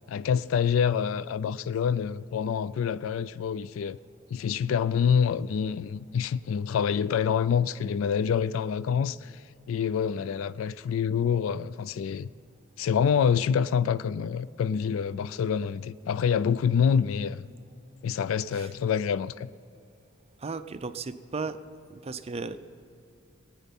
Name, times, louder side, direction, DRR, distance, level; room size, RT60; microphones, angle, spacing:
voice 1, 0.1-4.0 4.3-12.3 12.8-17.4 18.0-19.5, left 7 dB, 70° left, 0.3 m, -26 dB
voice 2, 20.4-21.6 21.9-22.6, right 4 dB, 30° right, 0.5 m, -35 dB
19.0 x 9.3 x 5.4 m
head